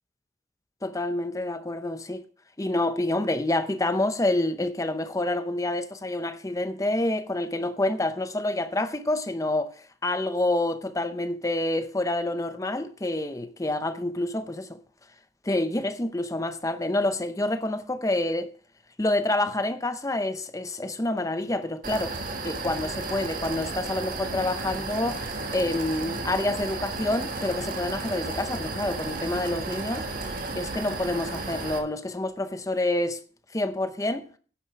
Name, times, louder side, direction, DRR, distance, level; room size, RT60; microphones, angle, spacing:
voice 1, 0.8-2.3 2.6-14.8 15.4-18.4 19.0-22.1 22.4-33.2 33.5-34.3, left 2 dB, 20° left, 0.8 m, -28 dB
sound 1, 21.8-31.8, right 3 dB, 50° right, 1.7 m, -33 dB
10.5 x 7.4 x 4.7 m
head